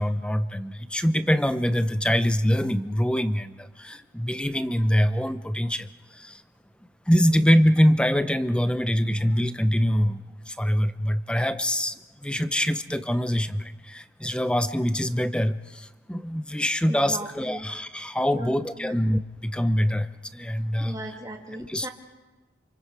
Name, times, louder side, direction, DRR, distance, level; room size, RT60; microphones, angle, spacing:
voice 1, 0.0-6.4 7.1-11.9 12.2-21.0 21.7-21.9, equal, 5° left, 12 dB, 0.7 m, -24 dB
voice 2, 16.9-17.7 18.3-19.0 20.8-21.9, right 1 dB, 20° right, 1 dB, 2.4 m, -37 dB
28.5 x 28.0 x 4.8 m, 1.2 s
head